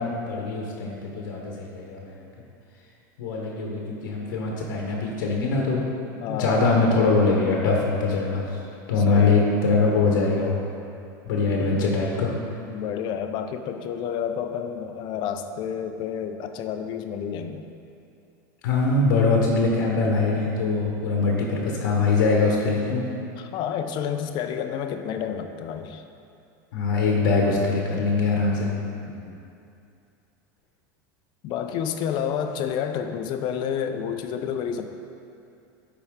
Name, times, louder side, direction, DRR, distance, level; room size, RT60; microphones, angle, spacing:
voice 1, 0.0-2.2 3.2-5.9 6.3-8.5 8.9-10.6 11.2-12.3 18.6-23.0 26.7-28.7, left 3 dB, 85° left, -1 dB, 1.1 m, -22 dB
voice 2, 6.2-6.6 9.0-9.4 12.7-17.7 23.4-26.0 29.1-29.4 31.4-35.0, left 8 dB, 45° left, 7 dB, 0.5 m, -30 dB
10.5 x 4.5 x 3.6 m, 2.6 s
supercardioid pair, 130°, 11 cm